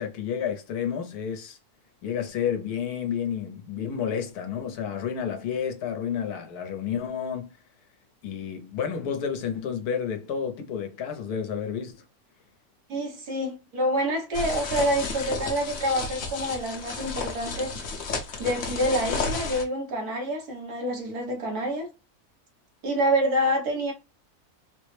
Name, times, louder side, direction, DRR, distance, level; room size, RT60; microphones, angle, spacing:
voice 1, 0.0-1.6 2.0-7.6 8.2-12.0, left 7 dB, 85° left, 1.3 m, -30 dB
voice 2, 12.9-17.7 18.4-21.9 22.8-23.9, equal, 80° right, 1.6 m, -27 dB
sound 1, 14.3-19.6, left 4 dB, 60° left, 1.1 m, -32 dB
3.8 x 2.1 x 3.1 m
omnidirectional pair, 1.6 m